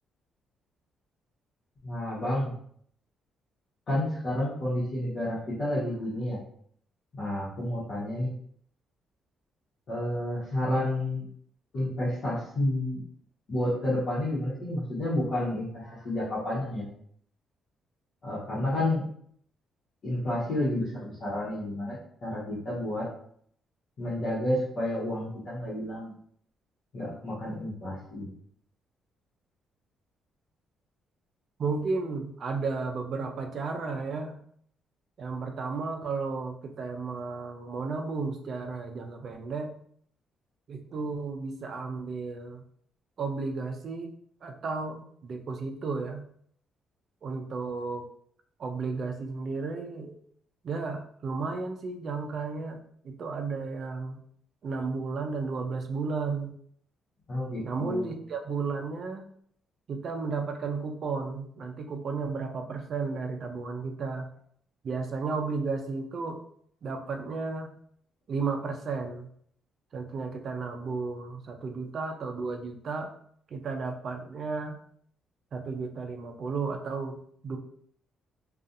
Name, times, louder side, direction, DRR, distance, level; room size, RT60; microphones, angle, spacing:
voice 1, 1.8-2.5 3.9-6.4 7.2-8.3 9.9-11.3 11.7-13.0 13.5-16.9 18.2-19.0 20.0-23.1 24.0-26.1 26.9-28.3 57.3-58.1, left 1 dB, 55° left, -10 dB, 1.0 m, -30 dB
voice 2, 31.6-34.4 35.2-39.7 40.7-42.6 43.2-44.1 44.4-46.2 47.2-48.0 48.6-50.1 50.6-54.2 54.6-56.6 57.6-59.3 59.9-64.3 64.8-66.4 66.8-67.7 68.3-69.3 69.9-73.1 73.5-74.8 75.5-77.6, right 4 dB, 55° right, 5 dB, 0.4 m, -33 dB
2.6 x 2.3 x 2.5 m, 0.64 s
cardioid pair, 90°, 0 cm